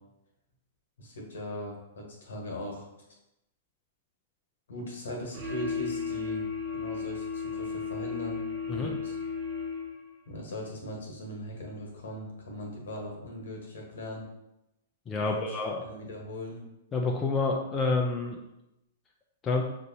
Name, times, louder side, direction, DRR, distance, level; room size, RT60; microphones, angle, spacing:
voice 1, 1.0-2.9 4.7-6.5 6.8-8.4 8.7-9.1 10.3-14.2 15.2-15.4 15.8-16.6, left 1 dB, 70° left, 0 dB, 1.2 m, -39 dB
sound 1, 5.3-10.2, left 5 dB, 45° right, 1.1 m, -34 dB
voice 2, 15.1-15.8 16.9-18.4 19.4-19.6, left 3 dB, 25° left, 0 dB, 0.5 m, -28 dB
6.1 x 2.6 x 2.7 m, 0.90 s
figure-of-eight pair, 110°, 0 cm